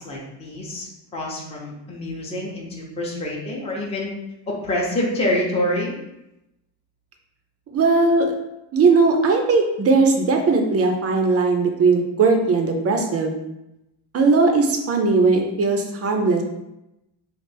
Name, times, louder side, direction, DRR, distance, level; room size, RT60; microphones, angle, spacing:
voice 1, 0.0-4.1 4.5-5.9, left 1 dB, 15° left, -3 dB, 0.6 m, -26 dB
voice 2, 7.7-8.3 8.7-13.4 14.1-16.4, right 3 dB, 35° right, 4 dB, 0.4 m, -18 dB
3.2 x 2.4 x 3.3 m, 0.89 s
cardioid pair, 115°, 46 cm